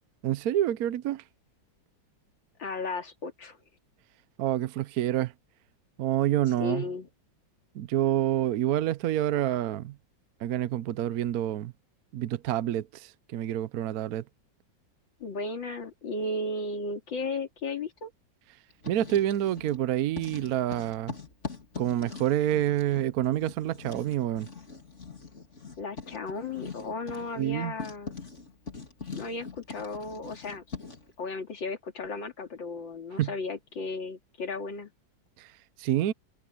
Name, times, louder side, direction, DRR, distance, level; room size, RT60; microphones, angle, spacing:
voice 1, 0.2-1.2 4.4-5.3 6.0-6.9 7.7-10.0 10.4-11.7 12.1-14.2 18.9-21.1 21.8-24.5 27.4-27.7 33.2-33.3 35.4-35.5 35.8-36.1, right 12 dB, 65° right, 1.0 m, -27 dB
voice 2, 2.6-3.6 6.6-7.1 15.2-18.1 25.8-28.1 29.2-30.6 31.2-34.9, left 3 dB, 80° left, 3.2 m, -35 dB
Writing, 18.7-19.8 20.1-31.1, left 5 dB, 35° left, 3.4 m, -42 dB
omnidirectional pair, 2.0 m